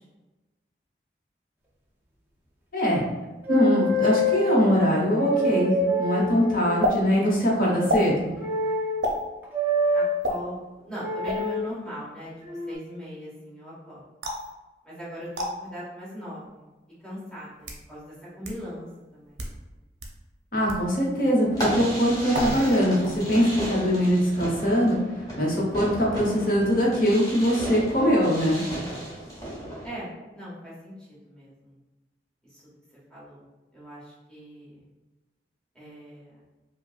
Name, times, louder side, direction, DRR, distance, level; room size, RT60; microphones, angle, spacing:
voice 1, 3.5-8.3 20.5-25.0 25.4-28.6, equal, 55° left, -3 dB, 1.0 m, -22 dB
sound 1, 3.5-4.6 5.1-6.8 8.4-9.0 9.5-10.1 11.0-11.5 12.4-12.7, left 1 dB, 10° right, 0.5 m, -25 dB
sound 2, 6.8-7.0 7.9-8.1 9.0-9.2 10.2-10.4 11.2-11.5 14.2-14.5 15.3-15.5 16.4-16.5 17.4-17.8 18.4-18.5 19.2-19.6 20.0-20.1 20.7-20.9 22.3-22.8 23.0-23.4, equal, 75° right, 0.6 m, -28 dB
voice 2, 9.9-10.6 10.8-12.3 12.7-14.0 14.8-16.4 17.0-18.0 18.4-19.6 29.4-30.1 30.3-30.9 31.2-31.7 33.1-33.4 33.7-34.7 35.7-36.4, equal, 5° left, -9 dB, 1.3 m, -39 dB
Fireworks, 21.5-29.9, equal, 20° left, 1.1 m, -34 dB
5.1 x 2.2 x 2.4 m, 1.1 s
head